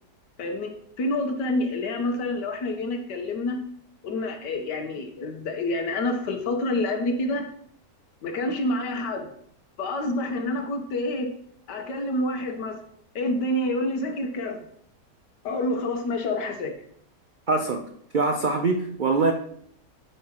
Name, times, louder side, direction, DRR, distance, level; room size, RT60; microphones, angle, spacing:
voice 1, 0.4-0.7 1.0-3.6 4.0-7.5 8.2-9.3 9.8-11.3 11.7-12.8 13.2-14.6 15.4-16.7, left 1 dB, 85° left, 5 dB, 1.7 m, -28 dB
voice 2, 17.5-17.8 18.1-19.3, right 3 dB, 70° right, 4 dB, 0.4 m, -23 dB
8.4 x 7.4 x 3.0 m, 0.66 s
omnidirectional pair, 1.8 m